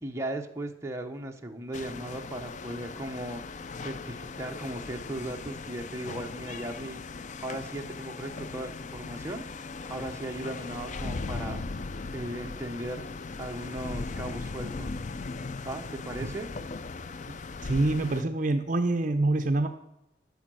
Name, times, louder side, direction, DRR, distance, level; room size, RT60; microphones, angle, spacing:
voice 1, 0.0-7.0 7.4-9.4 9.9-11.6 12.1-13.0 13.4-15.0 15.6-16.5, right 1 dB, 15° right, 2 dB, 1.0 m, -37 dB
sound 1, 1.7-18.2, left 3 dB, 40° left, 0.4 m, -38 dB
voice 2, 17.6-19.7, right 2 dB, 45° right, 7 dB, 0.6 m, -25 dB
13.0 x 6.5 x 6.3 m, 0.86 s
head